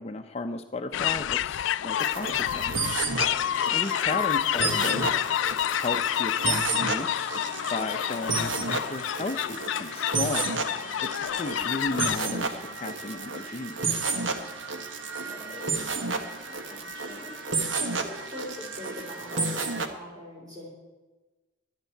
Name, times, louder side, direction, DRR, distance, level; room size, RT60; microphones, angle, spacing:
voice 1, 0.0-2.7 3.7-5.1 5.7-7.4 7.7-10.5 11.0-14.0, left 3 dB, 35° left, 6 dB, 0.5 m, -34 dB
sound 1, 0.9-12.2, left 11 dB, 80° left, 0.3 m, -28 dB
sound 2, 2.0-19.9, right 4 dB, 85° right, 1.3 m, -32 dB
voice 2, 4.5-5.0 15.2-15.6 16.0-17.3 17.8-20.7, left 1 dB, 20° right, -2 dB, 4.4 m, -42 dB
16.0 x 11.0 x 4.5 m, 1.2 s
head